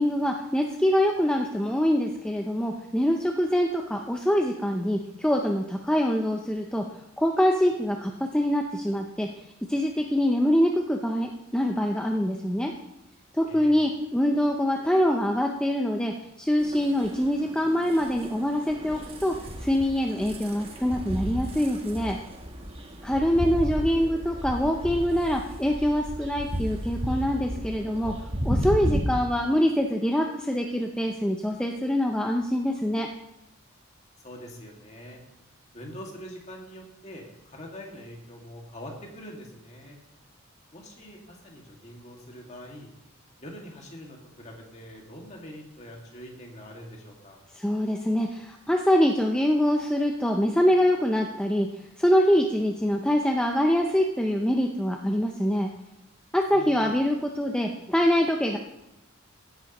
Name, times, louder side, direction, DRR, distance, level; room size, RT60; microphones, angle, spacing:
voice 1, 0.0-6.8 7.2-9.3 9.7-12.7 13.3-19.4 19.6-22.2 23.0-28.1 28.4-33.1 47.5-51.7 52.0-55.7 56.3-58.6, equal, 5° left, 1 dB, 0.5 m, -24 dB
voice 2, 13.5-13.9 23.0-23.6 34.2-35.2 35.7-40.0 40.7-42.9 43.4-47.4 56.5-56.9, equal, 35° left, 0 dB, 2.0 m, -44 dB
sound 1, 16.6-29.0, equal, 30° right, 1.2 m, -34 dB
16.0 x 9.4 x 3.0 m, 0.90 s
head